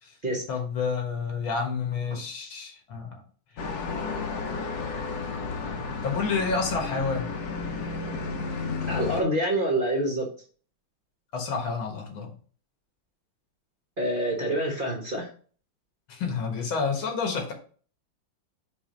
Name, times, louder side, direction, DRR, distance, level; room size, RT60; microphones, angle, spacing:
voice 1, 0.5-3.2 6.0-7.3 11.3-12.3 16.1-17.5, left 5 dB, 85° left, 3 dB, 2.1 m, -29 dB
sound 1, 3.6-9.2, left 4 dB, 60° left, 1.3 m, -32 dB
voice 2, 8.9-10.3 14.0-15.3, right 1 dB, 30° right, 0 dB, 1.1 m, -26 dB
4.8 x 4.1 x 5.1 m, 0.43 s
omnidirectional pair, 2.1 m